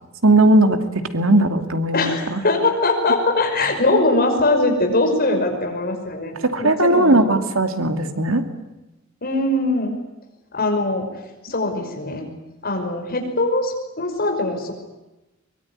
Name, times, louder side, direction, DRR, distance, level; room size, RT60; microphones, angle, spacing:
voice 1, 0.2-0.8 1.1-2.4 6.4-8.4, right 1 dB, 75° right, 7 dB, 2.5 m, -17 dB
voice 2, 1.9-7.4 9.2-9.9 10.5-11.0 11.4-12.3 12.6-14.7, left 2 dB, 45° left, 4 dB, 5.7 m, -21 dB
23.5 x 22.5 x 9.9 m, 1.0 s
head